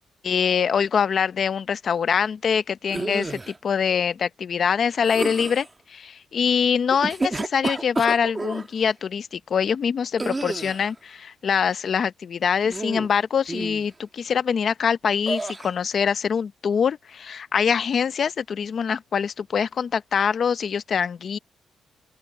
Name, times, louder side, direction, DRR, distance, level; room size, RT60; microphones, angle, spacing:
voice 1, 0.2-21.4, left 7 dB, 45° left, 0.6 m, -24 dB
sound 1, 2.9-3.6 5.0-5.7 6.9-8.7 10.2-10.9 12.6-13.2 13.5-13.9 15.3-15.7, right 2 dB, 20° right, 1.3 m, -30 dB
open air
wide cardioid pair, 155°, 0 cm